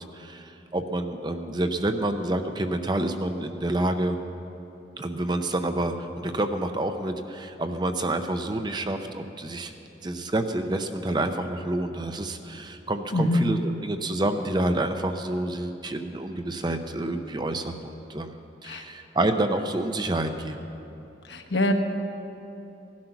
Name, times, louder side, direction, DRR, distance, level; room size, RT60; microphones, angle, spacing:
voice 1, 0.0-4.2 5.0-9.7 10.0-20.6, right 1 dB, 25° right, 7 dB, 0.6 m, -28 dB
voice 2, 13.1-13.5 18.6-18.8 21.3-21.7, left 1 dB, 65° left, 4 dB, 1.2 m, -24 dB
17.5 x 12.0 x 5.9 m, 2.9 s
head